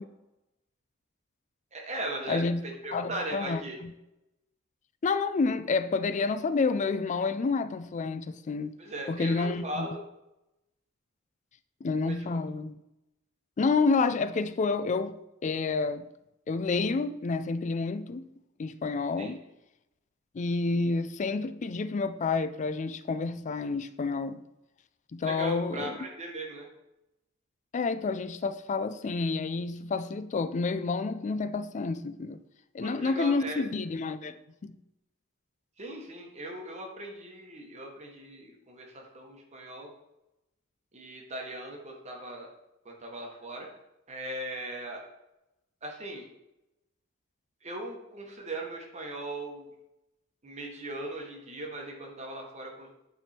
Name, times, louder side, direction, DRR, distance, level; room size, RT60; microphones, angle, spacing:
voice 1, 1.7-2.4 2.8-3.8 8.8-10.0 12.1-12.4 19.2-19.3 25.2-26.7 32.8-33.6 35.8-39.9 40.9-42.5 42.8-43.7 44.1-45.0 45.8-46.2 47.6-49.7 50.4-52.9, right 1 dB, 35° right, 1.1 m, -38 dB
voice 2, 2.3-2.6 2.9-3.9 5.0-8.7 9.1-9.9 11.8-12.7 13.6-15.2 15.4-16.0 16.5-18.3 18.6-19.4 20.3-24.4 25.1-26.0 27.7-32.4 32.7-34.4 34.6-34.7, left 4 dB, 35° left, 0.3 m, -29 dB
8.8 x 3.5 x 4.3 m
head